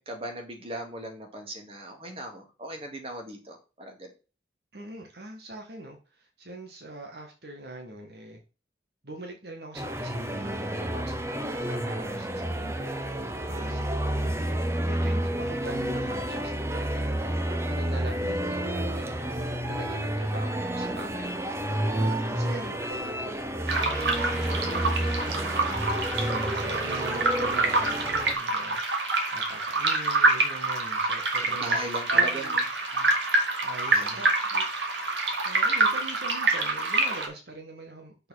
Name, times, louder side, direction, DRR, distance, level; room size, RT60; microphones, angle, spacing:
voice 1, 0.0-4.1 13.5-13.9 22.4-22.8 31.4-32.6 33.9-34.3, right 1 dB, 35° right, 3 dB, 2.1 m, -39 dB
voice 2, 4.7-8.4 9.0-13.0 13.2-14.4 14.8-21.3 21.9-23.8 24.3-25.9 26.2-28.8 29.3-31.8 32.1-32.6 32.9-33.1 33.6-34.7 35.4-38.3, right 1 dB, 60° right, 3 dB, 1.5 m, -42 dB
sound 1, 9.7-28.3, right 1 dB, 15° right, 0.8 m, -30 dB
sound 2, 23.7-37.3, right 3 dB, 85° right, 2.1 m, -26 dB
6.5 x 4.3 x 6.3 m, 0.33 s
head